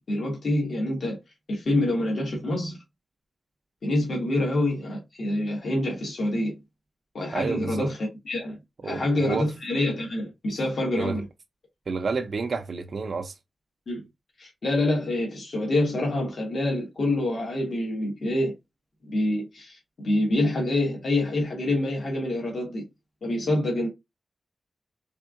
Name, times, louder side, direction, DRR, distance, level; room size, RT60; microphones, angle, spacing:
voice 1, 0.1-1.2 1.5-2.8 3.8-6.5 7.1-8.0 8.2-8.6 8.8-11.2 13.9-14.0 14.4-18.5 19.1-19.8 20.0-22.9 23.2-23.9, left 1 dB, 60° left, 1.5 m, -26 dB
voice 2, 7.3-7.9 8.8-9.5 11.0-11.2 11.9-13.3, right 4 dB, 55° right, 0.4 m, -29 dB
3.5 x 3.5 x 2.4 m
wide cardioid pair, 155°, 0 cm